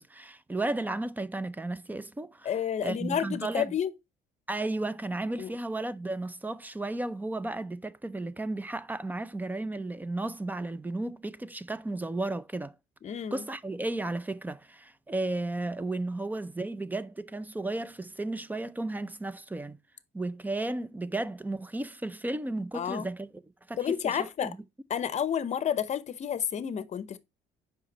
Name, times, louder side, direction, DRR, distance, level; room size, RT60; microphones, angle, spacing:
voice 1, 0.0-2.5 2.8-3.7 4.5-12.7 13.3-19.8 20.1-23.3 23.7-24.6, right 2 dB, 10° right, 0.5 m, -34 dB
voice 2, 2.4-3.9 5.4-5.5 13.0-13.4 22.7-23.1 23.8-24.6 24.9-27.2, left 8 dB, 40° left, 0.7 m, -30 dB
5.7 x 5.0 x 4.0 m
cardioid pair, 110°, 17 cm